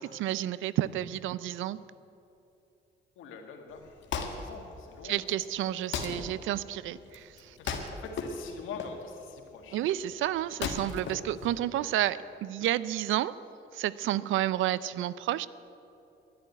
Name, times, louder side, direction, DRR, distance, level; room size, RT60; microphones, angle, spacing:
voice 1, 0.0-1.8 5.0-7.8 9.7-13.3 13.7-15.5, right 13 dB, 80° right, 18 dB, 0.5 m, -31 dB
voice 2, 3.2-5.8 7.6-9.8, left 5 dB, 90° left, 3 dB, 1.8 m, -45 dB
Wood, 3.7-12.0, left 5 dB, 70° left, 1.6 m, -38 dB
11.5 x 10.5 x 9.4 m, 2.8 s
cardioid pair, 90°, 20 cm